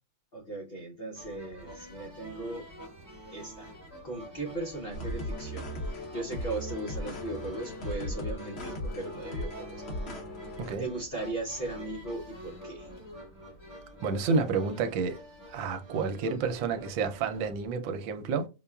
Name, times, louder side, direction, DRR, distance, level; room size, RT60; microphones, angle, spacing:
voice 1, 0.3-2.7 3.3-3.7 4.0-9.8 10.8-12.9, right 2 dB, 85° left, 0.5 m, -38 dB
sound 1, 1.2-17.7, equal, 10° left, 1.2 m, -47 dB
sound 2, 4.9-10.7, left 1 dB, 50° left, 0.8 m, -37 dB
voice 2, 14.0-15.2 15.5-18.5, right 4 dB, 85° right, 1.3 m, -30 dB
5.4 x 2.3 x 2.2 m
omnidirectional pair, 2.1 m